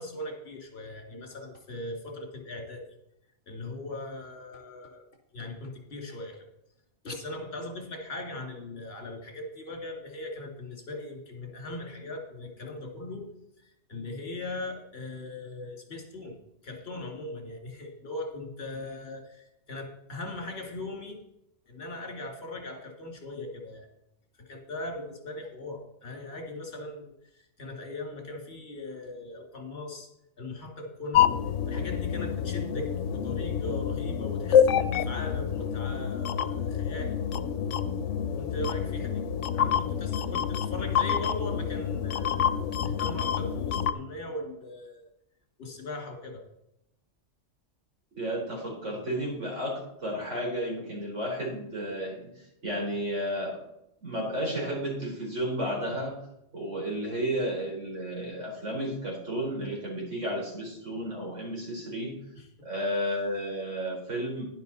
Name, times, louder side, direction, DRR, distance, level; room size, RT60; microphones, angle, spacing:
voice 1, 0.0-2.9 3.5-5.1 5.3-6.5 7.0-13.3 13.6-16.4 16.6-21.2 21.7-23.9 24.4-30.1 30.4-31.4 31.7-37.2 38.4-39.2 39.5-45.0 45.6-46.4 62.3-62.5, left 2 dB, 55° left, 1 dB, 2.7 m, -39 dB
sound 1, 31.1-43.9, left 8 dB, 85° left, 1.0 m, -27 dB
voice 2, 48.1-53.6 54.0-56.1 56.5-62.1 62.6-64.4, equal, 75° right, -2 dB, 4.5 m, -32 dB
11.0 x 11.0 x 4.1 m, 0.84 s
omnidirectional pair, 1.3 m